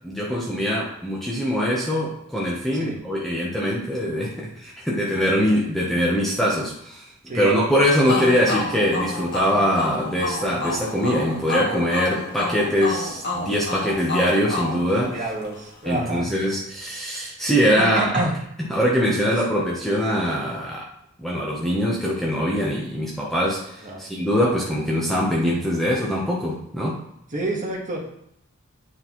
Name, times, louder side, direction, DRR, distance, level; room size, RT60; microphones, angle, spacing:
voice 1, 0.0-7.0 7.3-15.3 15.8-18.2 18.6-20.9 21.2-27.0, equal, ahead, -5 dB, 0.9 m, -23 dB
sound 1, 8.1-15.6, left 2 dB, 50° left, 1.3 m, -29 dB
voice 2, 15.1-16.3 17.8-18.3 23.8-24.0 27.3-28.1, right 2 dB, 35° right, -2 dB, 1.6 m, -27 dB
9.4 x 3.9 x 3.1 m, 0.74 s
head